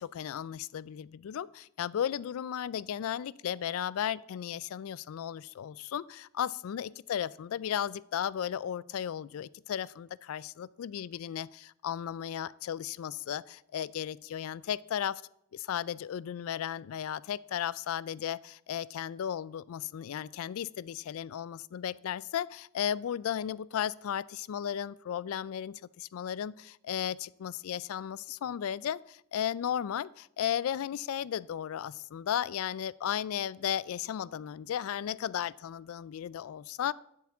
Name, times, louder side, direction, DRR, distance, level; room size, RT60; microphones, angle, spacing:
voice 1, 0.0-15.2 15.5-36.9, left 9 dB, 70° left, 21 dB, 0.3 m, -35 dB
7.9 x 7.1 x 7.2 m, 0.79 s
head